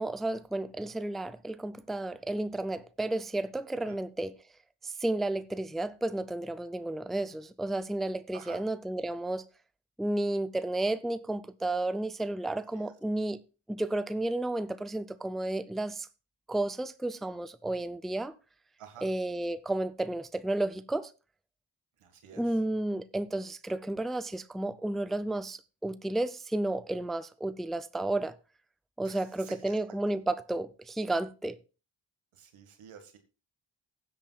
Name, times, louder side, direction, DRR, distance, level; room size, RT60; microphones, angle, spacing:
voice 1, 0.0-4.3 4.8-9.4 10.0-13.4 13.7-16.1 16.5-18.3 19.0-21.1 22.3-28.3 29.0-31.6, right 2 dB, ahead, 0.5 m, -32 dB
voice 2, 12.5-12.9 18.8-19.1 22.0-22.5 29.0-30.0 32.3-33.2, right 8 dB, 80° right, 2.0 m, -50 dB
15.5 x 8.6 x 2.4 m
supercardioid pair, 45°, 49 cm